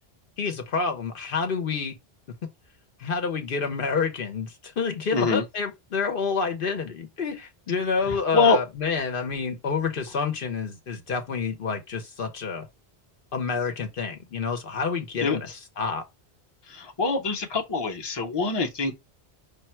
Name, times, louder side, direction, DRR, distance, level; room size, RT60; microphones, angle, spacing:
voice 1, 0.4-2.0 3.0-12.7 13.3-16.0, left 5 dB, 60° left, 0.9 m, -28 dB
voice 2, 5.1-5.4 8.1-8.6 15.2-15.4 16.7-18.9, left 4 dB, 25° left, 0.8 m, -24 dB
5.2 x 2.2 x 4.3 m
omnidirectional pair, 1.0 m